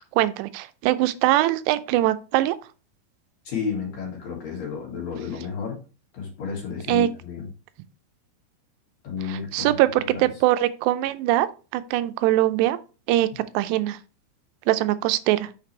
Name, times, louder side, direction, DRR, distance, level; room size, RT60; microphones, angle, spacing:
voice 1, 0.1-2.6 6.9-7.1 9.3-11.5 11.7-12.8 13.1-14.0 14.7-15.5, right 15 dB, 90° right, 2.7 m, -22 dB
voice 2, 3.4-5.8 6.1-7.5 9.0-10.3, left 6 dB, 50° left, 2.5 m, -32 dB
6.4 x 5.9 x 3.2 m
omnidirectional pair, 4.8 m